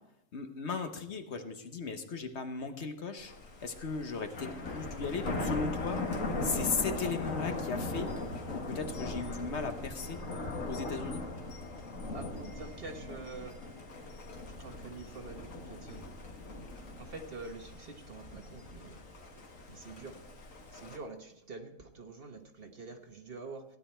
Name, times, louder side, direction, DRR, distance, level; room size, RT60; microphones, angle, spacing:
voice 1, 0.3-3.3 3.6-6.0 6.4-8.1 8.5-10.2 10.7-11.2, left 4 dB, 60° left, 7 dB, 1.3 m, -36 dB
Thunder, 3.2-21.0, left 2 dB, 85° left, 2.0 m, -39 dB
voice 2, 12.1-13.5 14.6-16.0 17.0-19.0 19.7-20.2 20.7-23.6, right 3 dB, 50° right, 5 dB, 1.3 m, -46 dB
16.0 x 10.0 x 4.4 m, 0.81 s
omnidirectional pair, 1.3 m